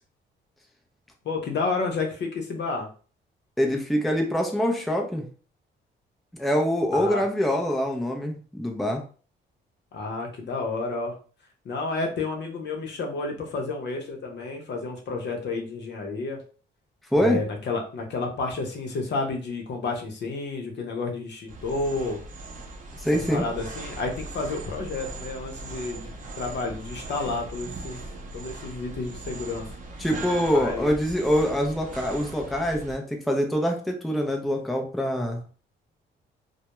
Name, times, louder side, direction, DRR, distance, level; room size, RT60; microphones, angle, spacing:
voice 1, 1.2-2.9 6.9-7.2 9.9-11.2 11.6-16.4 17.1-22.2 23.1-28.0 28.3-29.7 30.5-30.9, left 3 dB, 60° left, 2 dB, 0.7 m, -31 dB
voice 2, 3.6-5.3 6.3-9.0 17.1-17.4 23.0-23.5 30.0-35.4, equal, ahead, 2 dB, 0.5 m, -25 dB
sound 1, 21.5-32.9, right 2 dB, 40° right, 0.6 m, -39 dB
2.2 x 2.1 x 2.9 m, 0.39 s
cardioid pair, 90°, 20 cm